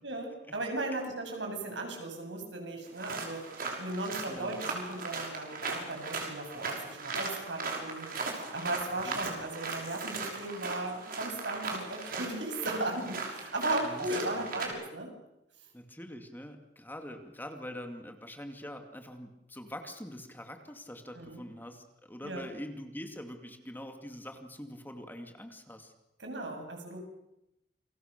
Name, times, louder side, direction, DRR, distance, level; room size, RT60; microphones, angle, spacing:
voice 1, 0.0-3.4 3.8-15.1 21.2-21.4 22.2-22.5 26.2-27.0, right 2 dB, 90° right, 3 dB, 7.4 m, -36 dB
sound 1, 2.9-14.7, right 4 dB, 55° right, 6.0 m, -38 dB
voice 2, 15.7-25.9, left 1 dB, 10° left, 5 dB, 2.5 m, -44 dB
29.0 x 23.0 x 6.8 m, 0.87 s
head